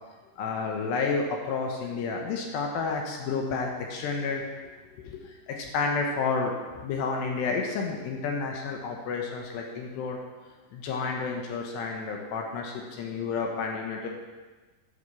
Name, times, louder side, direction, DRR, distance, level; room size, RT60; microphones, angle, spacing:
voice 1, 0.4-4.4 5.0-5.2 5.5-6.5 6.8-10.2 10.7-14.1, left 4 dB, 75° left, 1 dB, 2.9 m, -30 dB
9.4 x 6.4 x 6.9 m, 1.3 s
omnidirectional pair, 5.4 m